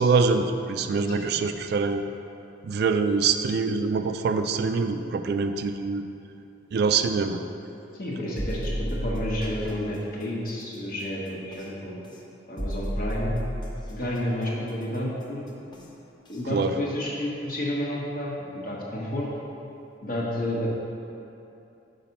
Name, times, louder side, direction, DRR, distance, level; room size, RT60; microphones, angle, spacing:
voice 1, 0.0-2.0 2.6-6.0 6.7-7.4 16.5-16.8, right 4 dB, 60° right, 8 dB, 0.3 m, -24 dB
voice 2, 8.0-12.1 12.5-13.3 13.9-15.7 16.3-19.3 20.0-20.7, left 1 dB, 55° left, -4 dB, 1.2 m, -31 dB
sound 1, 8.4-9.6 11.5-11.6 12.6-13.9 15.7-15.8 16.3-16.4, equal, 25° left, 0.7 m, -31 dB
5.9 x 4.0 x 5.8 m, 2.8 s
head